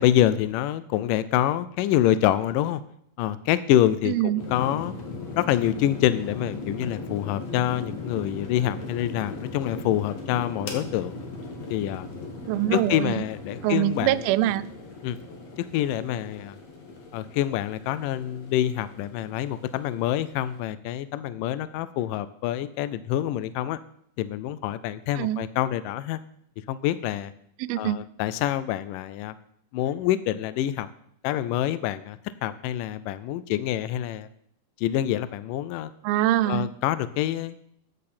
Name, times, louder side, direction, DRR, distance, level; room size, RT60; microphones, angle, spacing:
voice 1, 0.0-2.8 3.2-5.0 5.4-11.2 11.7-12.1 12.7-14.2 15.0-15.2 15.6-16.6 17.1-23.8 24.2-26.2 26.7-27.3 27.8-29.3 29.7-30.9 31.2-34.3 34.8-35.9 36.5-37.6, left 12 dB, 80° left, 2.0 m, -26 dB
voice 2, 4.1-4.4 12.5-13.2 13.6-14.6 25.2-25.4 27.6-28.0 36.0-36.7, right 14 dB, 85° right, 2.5 m, -24 dB
sound 1, 4.4-20.6, left 3 dB, 50° left, 2.5 m, -38 dB
14.0 x 10.5 x 4.3 m
omnidirectional pair, 4.3 m